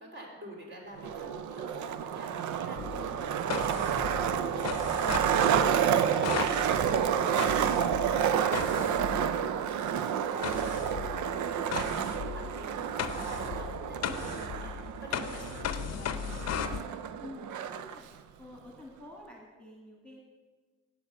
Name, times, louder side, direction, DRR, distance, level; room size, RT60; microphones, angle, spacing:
voice 1, 0.0-9.6 9.9-15.6 15.9-16.6, right 1 dB, 40° right, -2 dB, 3.5 m, -46 dB
Skateboard, 1.0-18.0, right 8 dB, 75° right, 0.6 m, -30 dB
voice 2, 2.7-3.1 15.8-16.1 17.2-18.1 18.4-20.2, left 1 dB, 5° left, -2 dB, 2.1 m, -49 dB
sound 1, 2.8-9.6 10.4-16.8, left 8 dB, 60° left, 0.7 m, -37 dB
9.0 x 7.5 x 5.8 m, 1.4 s
supercardioid pair, 70°, 30 cm